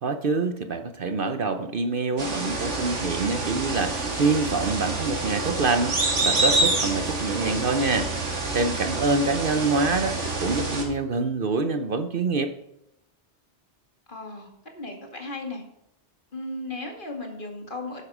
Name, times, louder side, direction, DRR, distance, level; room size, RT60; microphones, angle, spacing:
voice 1, 0.0-12.6, right 3 dB, 55° right, 9 dB, 0.9 m, -26 dB
sound 1, 2.2-10.8, right 2 dB, 80° right, 2.5 m, -27 dB
voice 2, 14.1-14.5 14.7-15.6 16.3-18.0, left 2 dB, 45° left, 2 dB, 2.3 m, -35 dB
11.5 x 9.7 x 4.9 m, 0.84 s
omnidirectional pair, 1.2 m